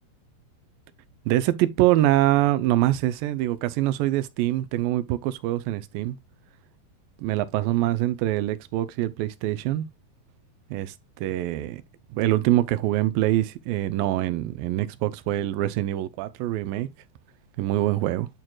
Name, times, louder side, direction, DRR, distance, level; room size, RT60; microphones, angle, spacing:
voice 1, 1.3-6.2 7.2-9.9 10.7-11.8 12.1-16.9 17.6-18.3, right 15 dB, 80° right, 2.2 m, -24 dB
11.0 x 4.5 x 2.3 m
omnidirectional pair, 4.2 m